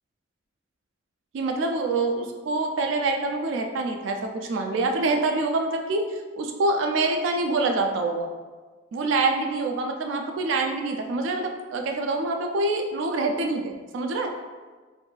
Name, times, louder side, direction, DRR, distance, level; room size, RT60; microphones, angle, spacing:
voice 1, 1.3-8.3 8.9-14.3, right 3 dB, 75° right, 4 dB, 0.3 m, -26 dB
2.6 x 2.3 x 3.8 m, 1.4 s
head